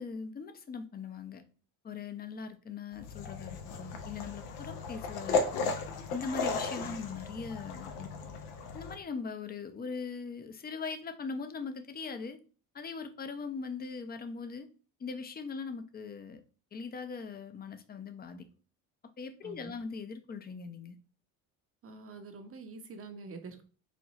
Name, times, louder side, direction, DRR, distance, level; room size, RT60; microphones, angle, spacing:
voice 1, 0.0-1.4 1.8-5.7 6.1-8.1 8.7-12.4 12.7-14.7 15.0-16.4 16.7-18.5 19.2-21.0, left 5 dB, 25° left, 0.6 m, -40 dB
sound 1, 2.9-9.0, left 4 dB, 80° left, 0.7 m, -35 dB
voice 2, 19.4-19.7 21.8-23.6, right 4 dB, 40° right, 0.8 m, -46 dB
4.2 x 2.2 x 2.9 m
supercardioid pair, 80°, 37 cm